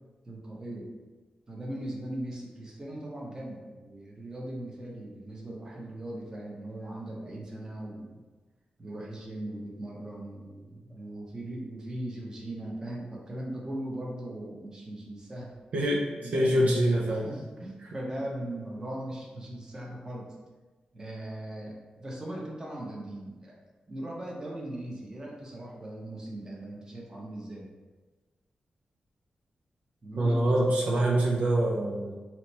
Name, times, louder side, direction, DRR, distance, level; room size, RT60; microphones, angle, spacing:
voice 1, 0.2-0.9 1.5-8.1 8.8-15.5 16.2-16.6 17.0-20.3 20.9-23.5 23.9-27.7 30.0-30.7, right 1 dB, 25° right, -3 dB, 0.7 m, -39 dB
voice 2, 15.7-17.3 30.2-32.1, right 1 dB, 70° right, -2 dB, 0.4 m, -25 dB
2.9 x 2.1 x 4.1 m, 1.2 s
wide cardioid pair, 110°, 3 cm